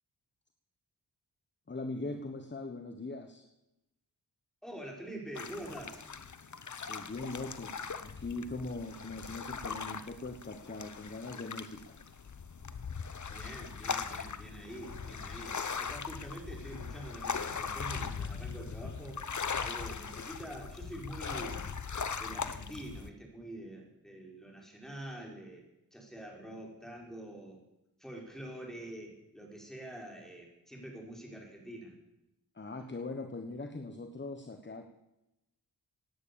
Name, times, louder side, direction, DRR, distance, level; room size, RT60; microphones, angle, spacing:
voice 1, 1.7-3.5 6.9-11.9 32.5-34.9, left 2 dB, 25° left, 7 dB, 1.3 m, -41 dB
voice 2, 4.6-6.0 13.3-19.2 19.6-21.7 22.2-27.6 28.0-32.0, right 1 dB, ahead, 0 dB, 5.1 m, -46 dB
sound 1, 5.3-23.1, left 5 dB, 45° left, 1.0 m, -40 dB
17.0 x 9.9 x 7.1 m, 0.91 s
cardioid pair, 65°, 42 cm